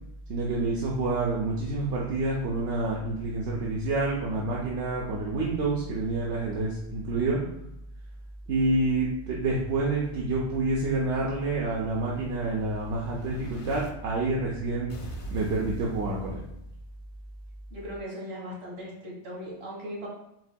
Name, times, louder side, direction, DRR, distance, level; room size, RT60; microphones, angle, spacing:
voice 1, 0.3-7.4 8.5-14.9 15.3-16.4, right 2 dB, 85° right, -3 dB, 1.0 m, -28 dB
Explosion, 11.3-13.9 14.9-16.9, right 1 dB, 40° left, 0.5 m, -43 dB
voice 2, 17.7-20.1, equal, 70° right, -4 dB, 1.7 m, -38 dB
7.5 x 2.7 x 2.2 m, 0.79 s
omnidirectional pair, 1.1 m